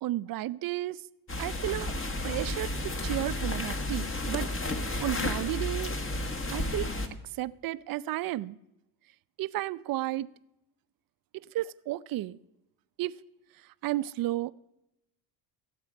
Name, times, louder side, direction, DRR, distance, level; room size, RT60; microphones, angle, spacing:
voice 1, 0.0-1.0 1.4-1.9 2.2-6.0 6.5-6.9 7.3-8.6 9.4-10.3 11.3-12.4 13.0-13.2 13.6-14.5, right 15 dB, 50° right, 0.5 m, -33 dB
sound 1, 1.3-7.1, left 1 dB, 25° left, 1.4 m, -32 dB
16.5 x 7.6 x 5.3 m
supercardioid pair, 85°, 47 cm